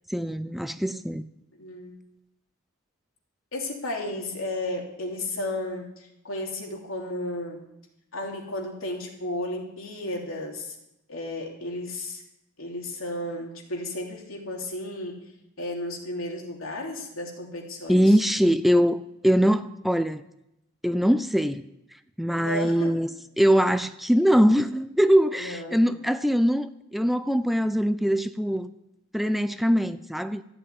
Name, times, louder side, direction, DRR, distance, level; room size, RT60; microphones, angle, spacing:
voice 1, 0.1-1.2 17.9-20.2 20.8-21.6 22.2-23.1 23.4-28.7 29.1-30.4, equal, ahead, 0.5 m, -22 dB
voice 2, 1.6-2.0 3.5-7.6 8.1-10.7 11.1-12.2 12.6-15.1 15.6-18.0 22.3-23.1 25.4-25.9, left 1 dB, 85° left, 3.1 m, -33 dB
14.5 x 7.9 x 9.5 m
head